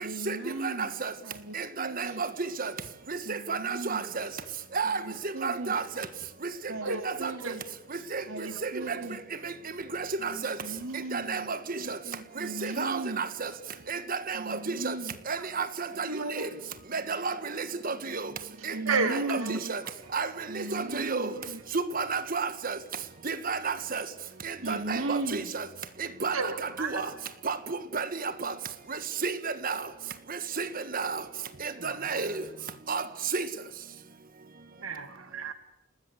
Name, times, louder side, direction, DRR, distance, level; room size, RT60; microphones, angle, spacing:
voice 1, 0.0-0.9 1.2-2.2 3.2-4.1 4.8-5.8 6.7-7.7 8.3-9.2 10.2-13.2 14.3-15.2 18.7-19.6 20.5-21.4 24.6-25.5, right 2 dB, 70° right, 2.5 m, -37 dB
voice 2, 0.6-1.1 1.5-2.3 2.6-2.7 3.1-4.3 4.7-5.0 5.4-6.0 7.0-7.3 8.1-8.2 8.6-9.0 9.4-9.5 9.9-10.6 11.1-11.6 11.9-12.0 12.6-13.5 13.9-14.6 14.8-14.9 15.3-16.1 16.3-16.5 16.9-18.3 18.6-19.4 19.7-19.8 20.1-20.3 20.5-21.3 21.9-22.8 23.2-24.0 24.4-25.6 26.2-26.3 26.8-27.1 27.4-28.5 28.9-29.8 30.6-30.7 30.9-31.2 31.6-32.3 32.9-33.0 33.3-33.5, right 4 dB, 45° right, 1.6 m, -32 dB
voice 3, 6.8-7.5 8.4-8.6 15.4-15.5 16.0-16.5 18.9-19.8 20.7-21.6 26.3-27.0 31.8-32.4 34.8-35.5, right 4 dB, 90° right, 2.2 m, -34 dB
29.5 x 20.0 x 8.1 m
head